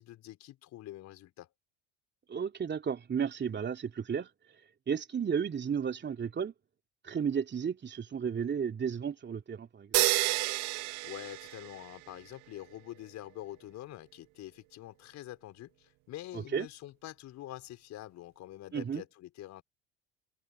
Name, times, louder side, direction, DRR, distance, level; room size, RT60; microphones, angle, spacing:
voice 1, 0.0-1.5 11.0-19.6, left 14 dB, 50° left, 5.5 m, -46 dB
voice 2, 2.3-4.3 4.9-6.5 7.0-10.0 16.3-16.7 18.7-19.0, right 7 dB, 30° right, 3.0 m, -33 dB
sound 1, 9.9-12.1, right 26 dB, 55° right, 1.0 m, -30 dB
figure-of-eight pair, 60°, 35 cm